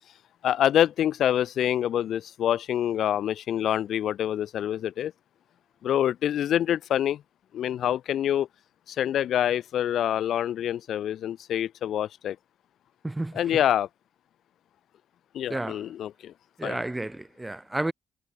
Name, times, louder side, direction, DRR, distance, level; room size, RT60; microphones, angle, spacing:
voice 1, 0.4-5.1 5.8-7.2 7.5-8.5 8.9-12.4 13.3-13.9 15.3-16.3 16.6-16.8, left 10 dB, 70° left, 2.9 m, -26 dB
voice 2, 13.0-13.4 15.5-15.9 16.6-17.9, right 2 dB, 15° right, 1.4 m, -31 dB
cardioid pair, 90°, 0 cm